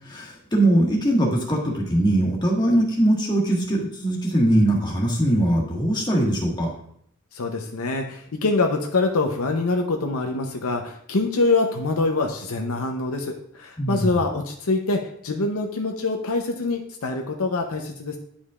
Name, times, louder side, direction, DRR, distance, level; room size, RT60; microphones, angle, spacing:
voice 1, 0.1-6.7 13.8-14.1, right 1 dB, 20° left, -3 dB, 1.6 m, -21 dB
voice 2, 7.3-18.2, left 3 dB, 70° left, 3 dB, 0.7 m, -25 dB
9.9 x 5.2 x 2.4 m, 0.66 s
head